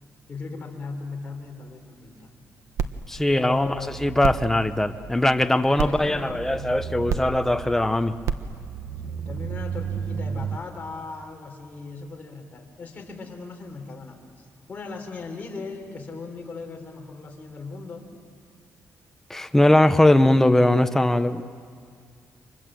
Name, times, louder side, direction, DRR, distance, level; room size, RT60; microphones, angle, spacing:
voice 1, 0.3-2.3 3.3-3.9 5.6-6.5 9.0-18.0, left 4 dB, 30° left, 0 dB, 3.9 m, -38 dB
sound 1, 2.8-10.6, right 7 dB, 70° right, 1.0 m, -32 dB
voice 2, 3.1-8.1 19.3-21.4, left 1 dB, 5° left, 9 dB, 0.8 m, -20 dB
29.5 x 26.0 x 7.7 m, 2.1 s
wide cardioid pair, 170°, 6 cm